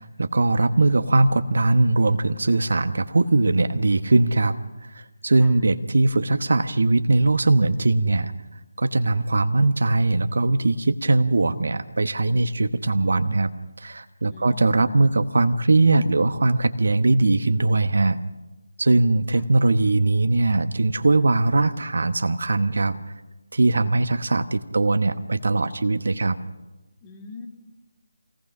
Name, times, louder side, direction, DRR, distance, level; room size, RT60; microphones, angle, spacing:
voice 1, 0.0-4.6 4.9-8.3 8.8-13.5 13.8-18.2 18.8-23.0 23.5-26.4, right 2 dB, 65° right, 10 dB, 1.1 m, -20 dB
voice 2, 14.3-14.8 19.3-19.4 27.0-27.5, left 3 dB, 20° left, 3 dB, 2.3 m, -43 dB
25.5 x 18.5 x 6.1 m, 1.1 s
figure-of-eight pair, 160°, 0 cm